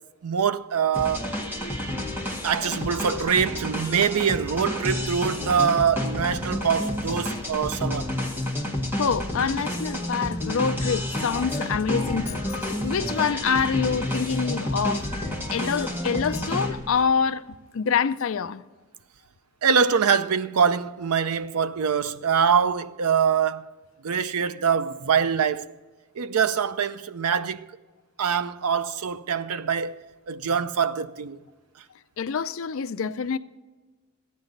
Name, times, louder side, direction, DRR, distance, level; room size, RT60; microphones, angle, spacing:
voice 1, 0.2-1.3 2.4-8.1 19.6-23.7 24.0-25.7 26.2-27.7 28.2-30.0 30.3-31.4, right 6 dB, 85° right, 0.5 m, -24 dB
sound 1, 0.9-17.1, left 1 dB, 10° right, 1.6 m, -30 dB
voice 2, 9.0-12.4 12.8-15.0 15.5-17.4 17.7-18.6 32.2-33.4, left 6 dB, 65° left, 0.5 m, -26 dB
14.0 x 9.5 x 3.9 m
head